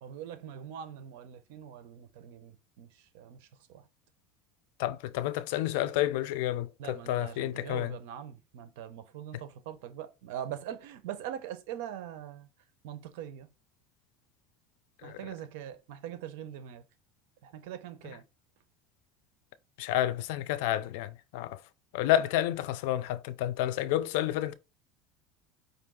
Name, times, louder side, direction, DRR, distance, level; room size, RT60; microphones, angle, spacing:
voice 1, 0.0-3.9 6.8-12.5 12.8-13.5 15.0-16.8 17.4-18.2, right 10 dB, 75° right, 0.8 m, -42 dB
voice 2, 4.8-7.9 15.0-15.2 18.0-18.1 19.8-21.6 21.9-24.5, left 13 dB, 75° left, 0.5 m, -30 dB
5.1 x 2.7 x 3.7 m
supercardioid pair, 130°, 0 cm